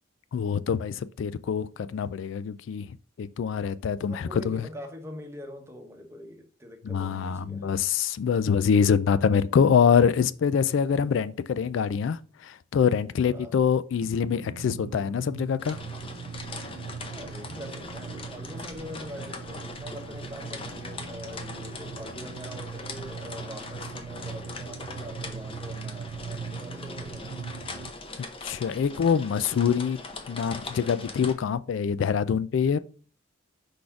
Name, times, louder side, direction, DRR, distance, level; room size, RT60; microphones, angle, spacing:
voice 1, 0.3-2.9 3.2-4.7 6.8-15.8 28.4-30.0 30.3-32.8, left 7 dB, 70° left, 0.3 m, -25 dB
voice 2, 4.1-7.7 13.3-13.6 17.1-27.4, equal, 15° right, 1.1 m, -43 dB
sound 1, 14.0-27.9, right 6 dB, 60° right, 0.4 m, -40 dB
sound 2, 15.6-31.3, left 3 dB, 25° left, 0.7 m, -41 dB
5.0 x 4.1 x 5.7 m
head